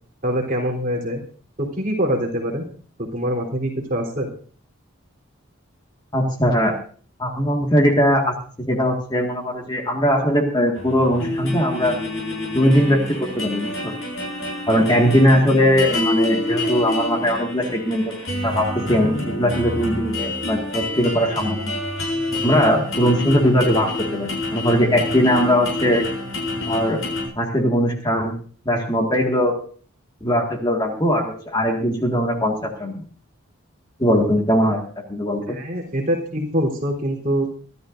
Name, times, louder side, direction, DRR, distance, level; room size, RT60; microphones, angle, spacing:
voice 1, 0.2-1.2 1.6-2.6 3.0-4.3 35.5-37.5, equal, 40° right, -1 dB, 3.7 m, -24 dB
voice 2, 6.1-6.7 7.2-8.3 8.7-12.0 12.5-14.0 14.7-18.1 18.4-21.7 22.4-26.0 26.7-27.0 27.4-28.3 28.7-29.5 30.2-33.0 34.0-34.8 35.1-35.6, equal, 20° left, 1 dB, 1.9 m, -20 dB
sound 1, 10.7-27.3, left 2 dB, 70° left, 7.1 m, -28 dB
24.0 x 12.5 x 2.6 m, 0.43 s
head